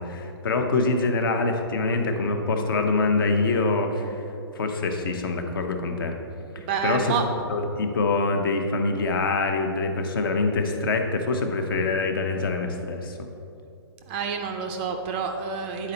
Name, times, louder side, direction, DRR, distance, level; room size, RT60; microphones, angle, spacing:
voice 1, 0.0-4.2 4.5-6.1 6.5-13.2, left 3 dB, 55° left, 5 dB, 0.9 m, -25 dB
voice 2, 6.7-7.3 14.1-15.9, right 6 dB, 25° right, 5 dB, 0.4 m, -28 dB
9.6 x 4.3 x 3.9 m, 2.6 s
hypercardioid pair, 150°, 14 cm